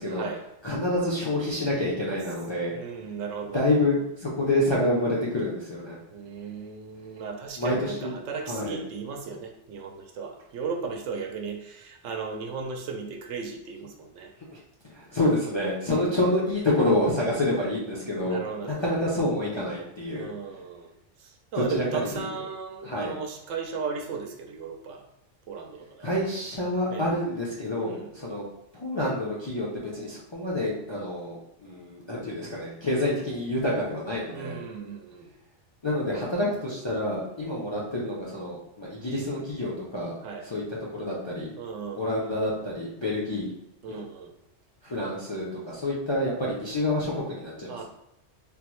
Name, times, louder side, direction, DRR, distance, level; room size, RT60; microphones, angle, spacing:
voice 1, 0.1-0.4 2.7-3.9 6.1-14.3 15.9-16.3 18.2-18.9 20.2-20.9 21.2-25.1 25.5-26.1 26.9-27.0 27.9-28.1 34.3-35.3 40.2-40.5 41.6-42.4 43.8-44.3 47.7-47.8, right 5 dB, 85° right, 3 dB, 0.9 m, -36 dB
voice 2, 0.6-3.1 3.5-6.0 7.6-8.1 8.5-8.8 14.5-14.6 14.9-18.4 18.6-20.6 21.6-22.2 22.8-23.1 26.0-28.4 28.7-34.6 35.8-40.1 40.4-41.5 42.0-43.5 43.9-44.0 44.8-47.8, left 1 dB, 45° left, -6 dB, 0.3 m, -28 dB
3.5 x 2.0 x 3.0 m, 0.82 s
omnidirectional pair, 1.2 m